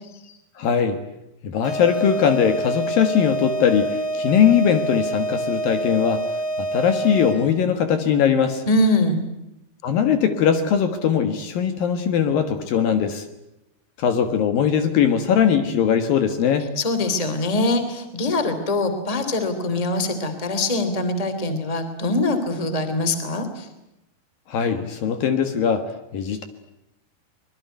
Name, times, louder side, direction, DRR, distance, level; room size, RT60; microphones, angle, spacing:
voice 1, 0.6-1.0 1.4-6.2 6.6-8.6 9.8-13.3 14.0-16.7 24.5-26.4, left 8 dB, 65° left, 8 dB, 3.0 m, -20 dB
sound 1, 1.6-7.6, right 1 dB, 45° left, 7.4 m, -27 dB
voice 2, 8.7-9.2 16.8-23.7, left 2 dB, 10° left, 9 dB, 2.3 m, -23 dB
25.0 x 22.0 x 9.3 m, 0.89 s
omnidirectional pair, 4.8 m